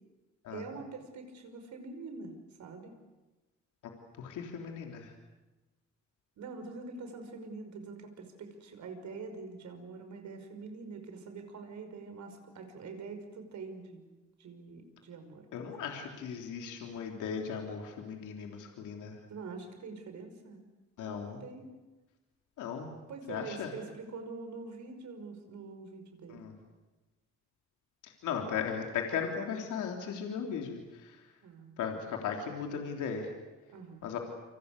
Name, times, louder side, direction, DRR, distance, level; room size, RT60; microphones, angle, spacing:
voice 1, 0.5-2.3 2.6-2.9 6.4-14.1 14.4-15.8 19.3-20.6 21.1-21.7 23.1-26.5 31.4-31.8 33.7-34.0, right 4 dB, 70° right, 6 dB, 5.6 m, -45 dB
voice 2, 4.2-5.1 15.5-19.2 21.0-21.4 22.6-22.9 23.3-23.7 26.3-26.5 28.0-31.3 31.8-33.3 34.0-34.2, left 7 dB, 85° left, 2 dB, 3.5 m, -37 dB
29.5 x 25.5 x 6.7 m, 1.1 s
cardioid pair, 90°, 30 cm